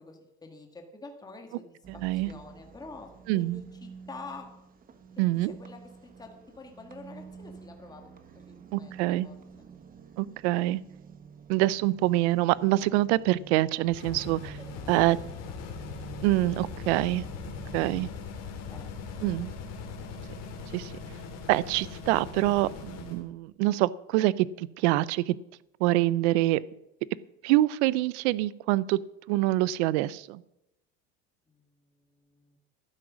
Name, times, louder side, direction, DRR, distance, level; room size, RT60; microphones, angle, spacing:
voice 1, 0.0-1.8 2.1-4.5 5.2-5.8 6.2-8.1 8.4-9.4 14.6-15.1 15.4-15.6 18.7-19.3 31.5-32.6, left 3 dB, 10° left, 3 dB, 1.7 m, -47 dB
sound 1, 1.8-18.1, right 6 dB, 25° right, 1.1 m, -49 dB
voice 2, 3.3-3.6 5.2-5.5 8.7-9.3 10.2-10.8 11.5-14.6 14.9-15.2 16.2-17.2 17.7-18.1 19.2-19.5 20.7-20.9 21.5-25.4 25.8-26.6 27.4-29.0 29.3-30.4, right 17 dB, 80° right, 21 dB, 0.6 m, -25 dB
sound 2, 13.9-23.2, left 5 dB, 50° left, 2.8 m, -40 dB
12.0 x 9.6 x 6.2 m, 0.89 s
cardioid pair, 140°, 33 cm